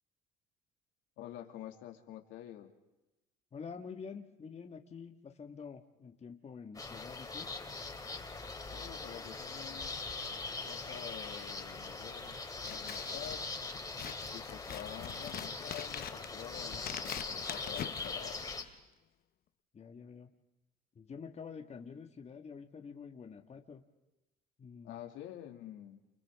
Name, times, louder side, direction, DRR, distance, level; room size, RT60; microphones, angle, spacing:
voice 1, 1.2-2.7 8.7-10.0 10.7-12.4 12.7-13.5 14.3-18.4 24.8-26.0, left 12 dB, 75° left, 3 dB, 2.6 m, -48 dB
voice 2, 3.5-7.5 19.7-20.3 21.0-23.8 24.6-25.0, left 6 dB, 35° left, 4 dB, 2.0 m, -48 dB
sound 1, 6.7-18.6, left 3 dB, 15° left, 3.4 m, -41 dB
Scissors, 12.5-18.8, left 10 dB, 50° left, 1.0 m, -45 dB
29.5 x 29.5 x 3.8 m, 1.0 s
supercardioid pair, 85°, 20 cm